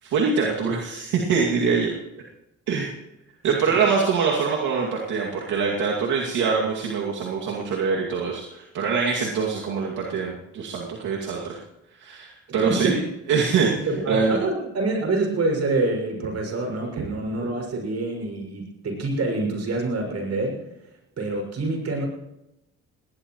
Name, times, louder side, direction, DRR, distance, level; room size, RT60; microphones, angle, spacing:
voice 1, 0.0-1.9 2.7-2.9 3.4-11.6 12.0-13.0 13.3-13.7 14.1-14.4 17.0-17.1, right 5 dB, 80° right, -3 dB, 2.5 m, -24 dB
voice 2, 12.5-12.9 13.9-20.6 21.2-22.0, right 2 dB, 55° right, 2 dB, 6.4 m, -26 dB
20.0 x 19.0 x 3.2 m, 0.90 s
cardioid pair, 90°, 30 cm